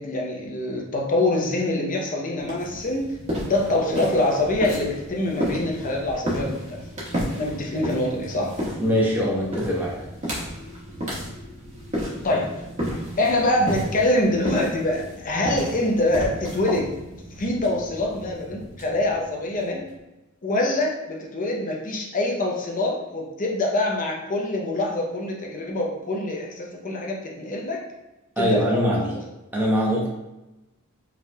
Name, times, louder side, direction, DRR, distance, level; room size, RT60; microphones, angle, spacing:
voice 1, 0.0-6.6 7.3-8.6 12.2-12.5 13.2-16.9 17.4-19.8 20.4-27.8 28.4-29.2, left 1 dB, 40° left, -1 dB, 0.7 m, -25 dB
sound 1, 2.4-19.9, equal, 35° right, 1.3 m, -33 dB
voice 2, 8.8-10.0 28.4-29.1 29.5-30.1, equal, 10° right, -4 dB, 0.9 m, -22 dB
5.1 x 3.1 x 2.3 m, 1.0 s
head